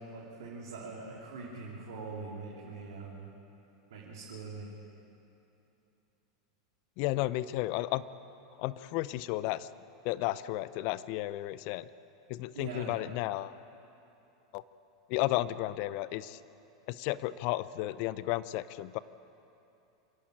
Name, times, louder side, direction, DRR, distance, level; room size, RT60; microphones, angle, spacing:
voice 1, 0.0-3.3 3.9-4.7 12.5-12.9, right 3 dB, 75° right, -5 dB, 3.4 m, -43 dB
voice 2, 7.0-8.0 8.6-9.7 10.0-11.8 12.3-13.6 14.5-14.6 15.1-16.4 16.9-19.0, left 16 dB, 55° left, 17 dB, 0.7 m, -33 dB
26.5 x 11.0 x 9.0 m, 2.9 s
hypercardioid pair, 95°, 2 cm